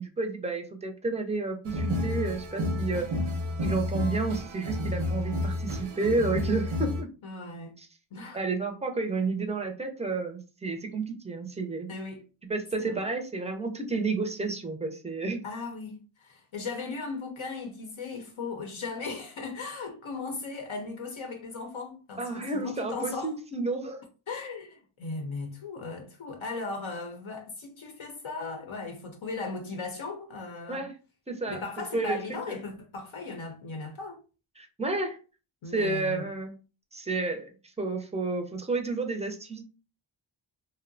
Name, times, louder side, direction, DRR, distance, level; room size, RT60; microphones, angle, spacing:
voice 1, 0.0-3.1 3.6-7.1 7.8-7.9 8.3-11.9 12.5-15.4 22.2-24.0 30.7-30.9 31.3-31.6 31.9-32.2 32.5-32.6 34.6-35.2 35.7-36.5 36.9-37.5 37.8-39.6, right 3 dB, 15° right, 0.4 m, -31 dB
sound 1, 1.6-7.0, left 2 dB, 80° right, 0.7 m, -31 dB
voice 2, 7.2-7.8 8.1-8.4 11.9-12.2 12.8-13.1 15.4-23.3 24.3-30.8 31.5-34.2 35.6-36.2, left 3 dB, 75° left, 0.6 m, -37 dB
2.6 x 2.0 x 2.5 m
wide cardioid pair, 85°, 49 cm